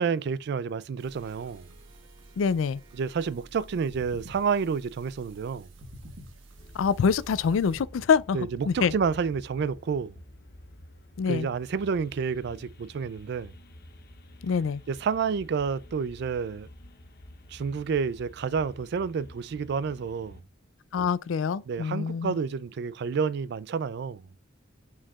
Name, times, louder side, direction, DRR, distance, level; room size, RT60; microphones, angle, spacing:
voice 1, 0.0-1.7 2.9-5.7 8.3-10.2 11.3-13.5 14.9-16.7 17.5-20.4 21.7-24.3, right 5 dB, 55° right, 0.3 m, -29 dB
sound 1, 1.0-7.8, right 1 dB, 80° right, 1.3 m, -49 dB
voice 2, 2.4-2.8 6.7-8.9 11.2-11.5 14.4-14.8 20.9-22.4, left 6 dB, 80° left, 0.4 m, -25 dB
sound 2, 6.6-20.4, left 1 dB, 50° left, 0.8 m, -49 dB
8.7 x 4.6 x 2.4 m
head